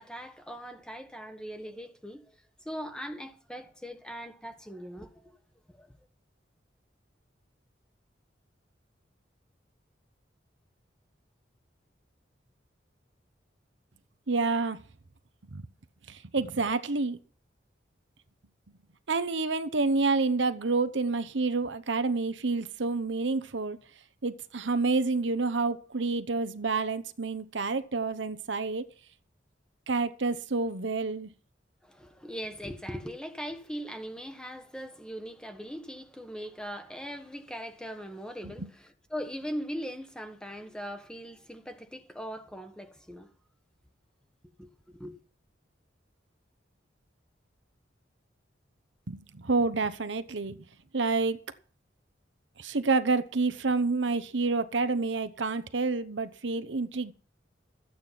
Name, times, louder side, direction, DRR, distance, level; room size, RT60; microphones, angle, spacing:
voice 1, 0.0-2.3 2.6-5.4 5.7-5.9 31.8-43.3 44.6-45.2, equal, 5° left, 1.5 m, -40 dB
voice 2, 14.3-14.8 15.5-15.7 16.1-17.2 19.1-23.8 24.2-28.9 29.9-31.3 38.4-38.7 49.1-50.6 50.9-51.4 52.6-57.1, right 3 dB, 80° right, 0.9 m, -28 dB
14.0 x 8.8 x 5.9 m
head